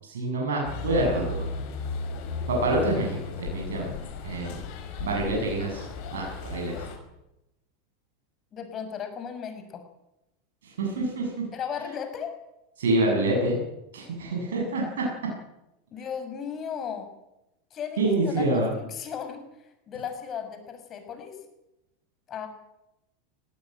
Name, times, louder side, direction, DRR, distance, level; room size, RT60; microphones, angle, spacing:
voice 1, 0.0-1.4 2.5-4.0 4.2-4.6 5.0-6.9 10.6-11.3 12.8-13.6 13.9-14.8 18.0-18.7, right 2 dB, 75° right, -1 dB, 8.0 m, -26 dB
sound 1, 0.6-7.0, left 4 dB, 60° left, 5.8 m, -35 dB
voice 2, 8.5-9.8 11.5-12.4 15.9-17.1 17.7-21.4 22.3-22.5, left 7 dB, 35° left, 6 dB, 6.5 m, -36 dB
20.0 x 17.5 x 9.3 m, 0.90 s
hypercardioid pair, 90°, 0 cm